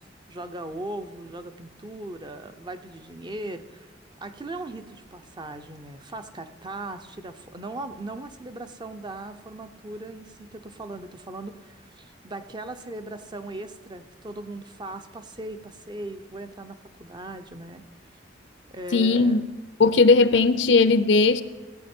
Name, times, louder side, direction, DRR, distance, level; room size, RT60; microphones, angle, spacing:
voice 1, 0.0-3.9 4.2-17.8 18.7-19.4, right 2 dB, 25° right, 0.6 m, -38 dB
voice 2, 18.9-19.4 19.8-21.4, left 3 dB, 75° left, 0.6 m, -18 dB
15.0 x 8.4 x 4.4 m
head